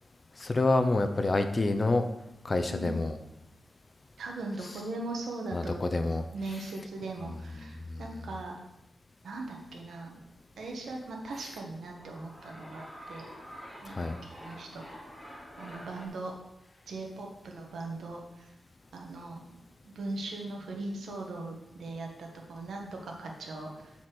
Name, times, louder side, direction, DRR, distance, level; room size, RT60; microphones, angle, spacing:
voice 1, 0.4-2.1 2.4-3.2 5.5-6.2 7.6-8.0 13.9-14.2, left 2 dB, 35° left, 7 dB, 0.6 m, -28 dB
voice 2, 4.2-8.6 9.2-10.2 10.6-13.3 13.8-14.8 15.6-16.3 16.9-18.5 18.9-19.6 19.8-23.9, right 2 dB, 85° right, 1 dB, 1.3 m, -39 dB
sound 1, 11.7-16.1, equal, ahead, 3.3 m, -47 dB
7.6 x 4.4 x 6.1 m, 0.89 s
cardioid pair, 75°, 0 cm